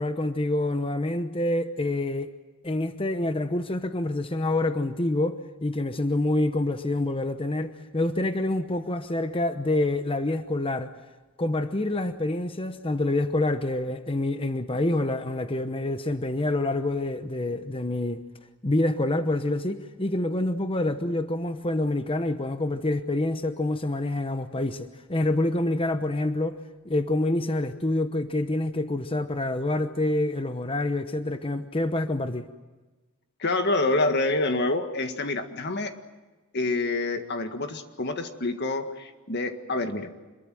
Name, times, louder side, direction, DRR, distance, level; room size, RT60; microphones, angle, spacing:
voice 1, 0.0-2.3 2.6-10.9 11.4-18.2 18.6-26.6 26.8-32.5, left 2 dB, 25° left, 0.9 m, -27 dB
voice 2, 33.4-35.9 36.5-40.2, left 2 dB, 50° left, 1.8 m, -27 dB
26.5 x 22.5 x 7.7 m
head